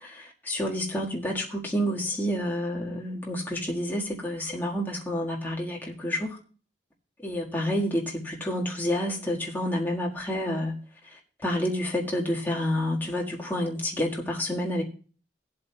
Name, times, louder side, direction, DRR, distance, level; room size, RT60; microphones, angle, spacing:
voice 1, 0.5-6.3 7.2-10.7 11.4-14.8, left 1 dB, 10° left, -2 dB, 1.6 m, -29 dB
19.0 x 8.0 x 2.3 m, 0.39 s
head